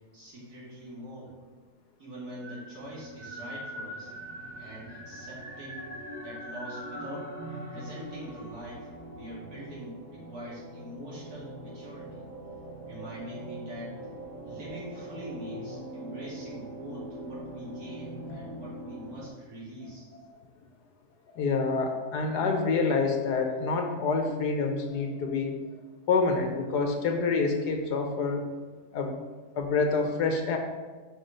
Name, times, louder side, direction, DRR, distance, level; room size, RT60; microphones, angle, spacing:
voice 1, 0.1-1.3 2.0-4.1 4.6-5.9 6.2-7.3 7.7-12.2 12.9-14.0 14.4-20.1, right 1 dB, 70° right, -6 dB, 3.0 m, -43 dB
sound 1, 2.2-19.3, right 1 dB, 15° right, 1.7 m, -42 dB
voice 2, 21.3-25.6 26.1-28.4 28.9-29.2 29.5-30.6, left 4 dB, 90° left, 4 dB, 1.6 m, -27 dB
5.9 x 5.8 x 5.1 m, 1.3 s
omnidirectional pair, 1.7 m